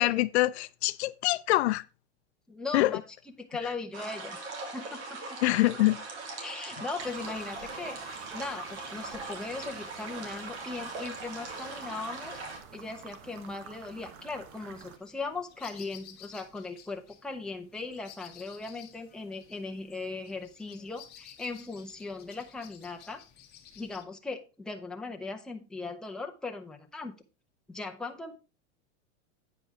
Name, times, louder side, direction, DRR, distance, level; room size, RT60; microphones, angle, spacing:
voice 1, 0.0-1.8 2.7-3.0 5.4-6.0, left 18 dB, 70° left, 0.5 m, -25 dB
voice 2, 2.5-3.0 3.4-4.4 4.7-5.4 6.4-12.4 12.7-23.2 23.8-27.1 27.7-28.4, left 3 dB, ahead, 0.7 m, -38 dB
sound 1, 3.9-12.6, right 3 dB, 75° right, 3.2 m, -40 dB
sound 2, 7.0-15.0, right 6 dB, 35° right, 1.2 m, -49 dB
sound 3, 14.9-24.0, left 10 dB, 30° left, 1.4 m, -54 dB
8.8 x 5.2 x 4.7 m
supercardioid pair, 145°, 35 cm